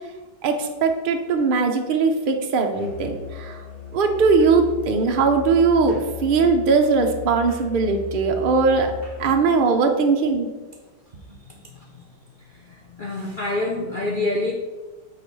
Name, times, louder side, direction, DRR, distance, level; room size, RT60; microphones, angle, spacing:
voice 1, 0.4-3.5 3.9-8.9 9.2-10.5, right 4 dB, 70° right, 4 dB, 0.5 m, -20 dB
Musical instrument, 2.7-9.5, left 7 dB, 30° left, 2.6 m, -37 dB
voice 2, 13.0-14.5, left 2 dB, 85° left, -1 dB, 0.4 m, -25 dB
6.2 x 4.2 x 6.1 m, 1.2 s
omnidirectional pair, 2.0 m